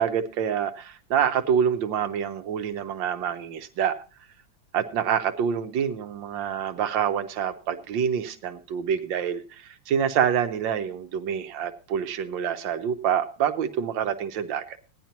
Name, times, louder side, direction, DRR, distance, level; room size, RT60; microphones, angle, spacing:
voice 1, 0.0-4.0 4.7-14.8, right 8 dB, 85° right, 7 dB, 1.5 m, -26 dB
17.0 x 10.5 x 2.9 m, 0.34 s
omnidirectional pair, 2.0 m